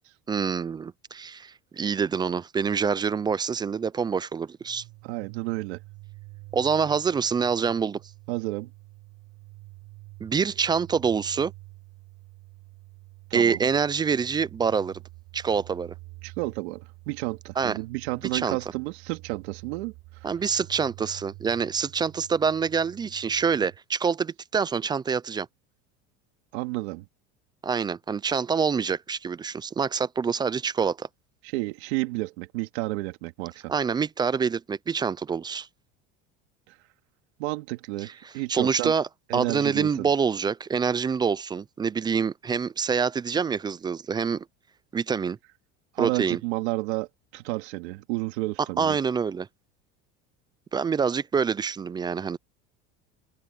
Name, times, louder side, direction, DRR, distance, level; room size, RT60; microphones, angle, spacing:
voice 1, 0.3-4.8 6.5-8.0 10.2-11.5 13.3-15.0 15.3-15.9 17.6-17.8 18.3-18.6 20.2-25.5 27.6-31.1 33.7-35.7 38.0-38.1 38.5-44.5 44.9-45.4 46.0-46.4 48.8-49.5 50.7-52.4, right 6 dB, 15° right, 0.3 m, -26 dB
sound 1, 4.6-23.8, right 23 dB, 65° right, 4.2 m, -48 dB
voice 2, 5.0-5.8 8.3-8.7 13.3-13.6 16.2-19.9 26.5-27.0 31.4-33.6 37.4-38.9 39.3-40.1 45.9-49.0, right 22 dB, 85° right, 2.6 m, -31 dB
open air
supercardioid pair, 135°, 32 cm